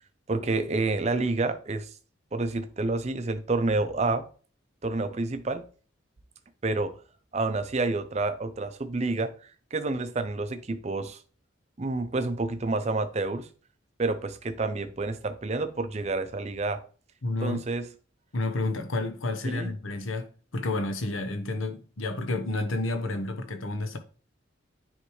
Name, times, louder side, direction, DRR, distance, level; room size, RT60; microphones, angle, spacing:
voice 1, 0.3-1.9 2.3-4.3 4.8-5.7 6.6-7.0 7.3-9.3 9.7-11.2 11.8-13.5 14.0-16.8 17.4-17.9 19.4-19.8, right 3 dB, 35° right, 0.5 m, -29 dB
voice 2, 17.2-17.6 18.3-24.0, left 2 dB, 90° left, 1.0 m, -30 dB
9.6 x 3.3 x 3.1 m
head